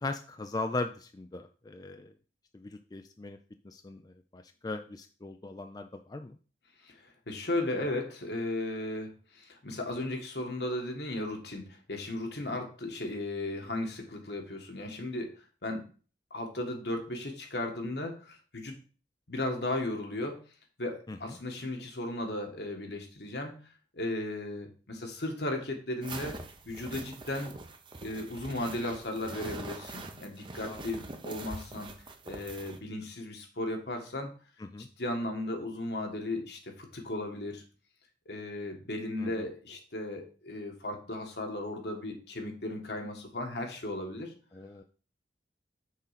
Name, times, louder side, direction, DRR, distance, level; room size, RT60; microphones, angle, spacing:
voice 1, 0.0-2.1 2.5-3.4 3.6-6.4 12.5-12.6 21.1-21.4 30.6-30.9 34.6-34.9 39.2-39.5 44.5-44.8, left 2 dB, 20° left, 7 dB, 0.4 m, -39 dB
voice 2, 6.8-15.8 16.3-18.8 19.3-20.5 20.8-27.5 28.0-31.9 32.2-34.3 34.8-37.6 38.2-44.3, left 1 dB, 65° left, 3 dB, 1.5 m, -36 dB
sound 1, 26.0-32.8, right 2 dB, 25° right, 0.7 m, -43 dB
6.5 x 3.8 x 5.7 m, 0.38 s
head